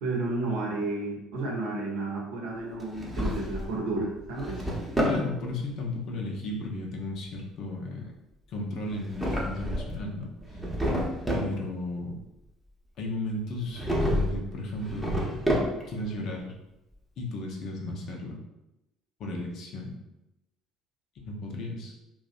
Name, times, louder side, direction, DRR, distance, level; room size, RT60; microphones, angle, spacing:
voice 1, 0.0-4.7, right 2 dB, 70° right, -2 dB, 0.6 m, -32 dB
Drawer open or close, 2.8-3.8 4.2-5.3 8.9-10.0 10.4-11.5 13.7-14.4 14.7-16.0, equal, 10° right, 0.7 m, -29 dB
voice 2, 5.0-8.1 8.5-10.3 11.3-12.2 13.0-15.4 15.9-16.5 17.2-18.4 19.2-19.9 21.2-22.0, left 2 dB, 55° left, 0 dB, 0.6 m, -34 dB
2.6 x 2.1 x 2.4 m, 0.92 s
hypercardioid pair, 60°, 0 cm